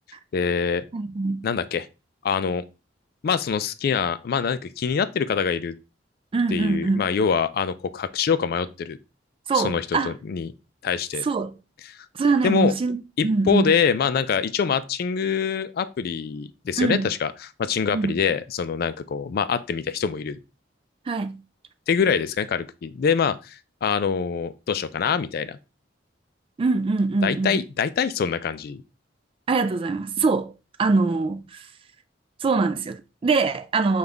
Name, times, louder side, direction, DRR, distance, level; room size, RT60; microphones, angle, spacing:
voice 1, 0.3-0.8 1.4-1.9 2.2-2.6 3.2-5.7 6.5-9.0 9.5-10.5 10.8-11.2 11.9-12.1 12.4-12.7 13.2-20.4 21.9-25.6 27.2-28.8, left 6 dB, 55° left, 0.3 m, -25 dB
voice 2, 0.9-1.4 6.3-7.0 9.5-10.1 11.2-11.5 12.2-13.0 13.2-13.7 16.8-17.1 17.9-18.2 21.1-21.4 26.6-27.5 29.5-30.5 30.8-31.7 32.4-34.0, right 3 dB, 30° right, 0.3 m, -23 dB
5.3 x 2.4 x 3.3 m
head